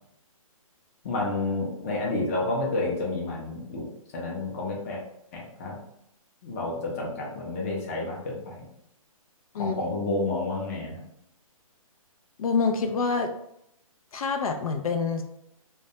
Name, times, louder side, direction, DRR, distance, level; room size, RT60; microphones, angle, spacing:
voice 1, 1.0-5.0 5.3-5.8 6.4-8.7 9.6-11.0, left 2 dB, 25° left, -3 dB, 0.5 m, -30 dB
voice 2, 12.4-13.3 14.1-15.2, left 4 dB, 75° left, 5 dB, 0.4 m, -26 dB
2.2 x 2.1 x 2.7 m, 0.78 s
hypercardioid pair, 160°, 18 cm